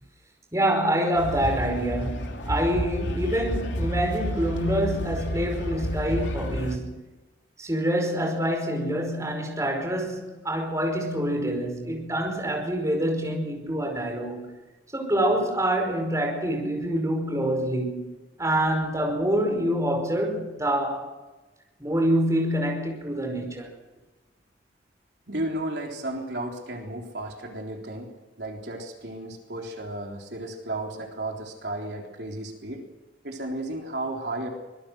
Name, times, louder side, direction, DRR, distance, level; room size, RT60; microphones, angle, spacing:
voice 1, 0.5-7.0 7.6-14.5 14.9-18.1 18.4-21.1 21.8-23.7, right 1 dB, 15° right, 5.0 m, -26 dB
sound 1, 1.1-6.8, equal, 90° left, 3.1 m, -30 dB
voice 2, 25.3-28.1 28.4-32.9 33.2-34.5, right 1 dB, 70° right, 3.8 m, -33 dB
25.0 x 21.0 x 6.4 m
head